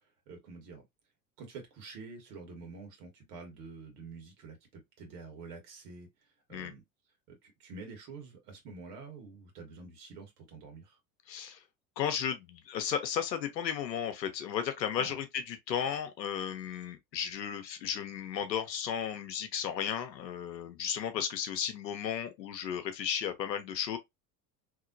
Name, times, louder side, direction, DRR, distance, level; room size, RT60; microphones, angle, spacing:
voice 1, 0.3-0.8 1.4-6.8 7.3-11.0 15.0-15.2, right 4 dB, 65° right, 1.7 m, -48 dB
voice 2, 11.3-11.6 12.0-24.0, left 8 dB, 85° left, 0.9 m, -34 dB
3.0 x 2.9 x 2.5 m
hypercardioid pair, 85°, 49 cm